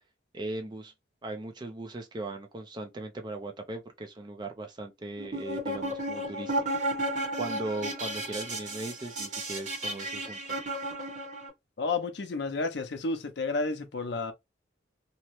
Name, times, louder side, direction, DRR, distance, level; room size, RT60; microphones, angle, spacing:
voice 1, 0.3-0.9 1.2-6.6 7.4-10.4, right 2 dB, 25° right, 0.4 m, -38 dB
sound 1, 5.2-11.5, right 1 dB, 40° right, 1.0 m, -33 dB
voice 2, 11.8-14.3, left 3 dB, 60° left, 0.5 m, -31 dB
2.8 x 2.0 x 2.9 m
head